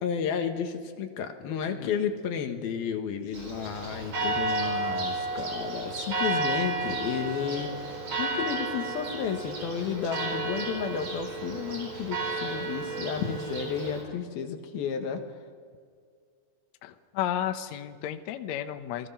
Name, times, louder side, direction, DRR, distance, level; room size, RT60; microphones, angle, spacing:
voice 1, 0.0-7.9 8.2-15.2, left 7 dB, 90° left, 5 dB, 3.5 m, -32 dB
Church bell, 3.3-14.0, right 3 dB, 45° right, 5.7 m, -32 dB
voice 2, 16.8-19.1, left 11 dB, 65° left, 8 dB, 1.9 m, -32 dB
28.5 x 20.0 x 5.8 m, 2.1 s
omnidirectional pair, 4.2 m